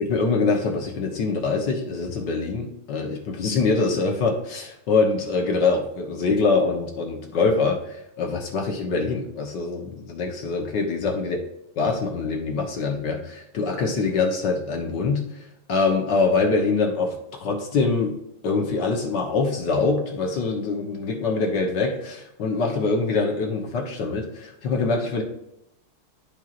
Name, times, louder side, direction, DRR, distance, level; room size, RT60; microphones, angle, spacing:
voice 1, 0.0-11.4 11.8-15.3 15.7-18.1 18.4-25.2, left 4 dB, 60° left, 1 dB, 1.6 m, -24 dB
12.5 x 4.5 x 2.5 m, 0.83 s
omnidirectional pair, 2.3 m